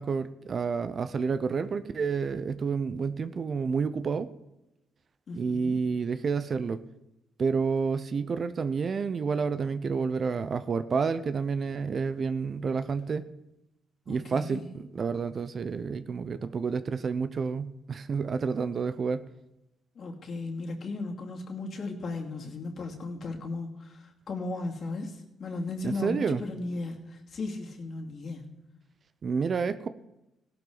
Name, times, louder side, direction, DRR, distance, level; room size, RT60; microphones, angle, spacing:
voice 1, 0.0-4.3 5.3-6.8 7.4-13.2 14.1-19.2 25.8-26.4 29.2-29.9, right 5 dB, 45° right, 12 dB, 0.7 m, -29 dB
voice 2, 5.3-5.8 14.1-14.7 20.0-28.5, left 2 dB, 55° left, 1 dB, 2.6 m, -36 dB
17.0 x 11.5 x 4.0 m, 0.93 s
cardioid pair, 90°, 0 cm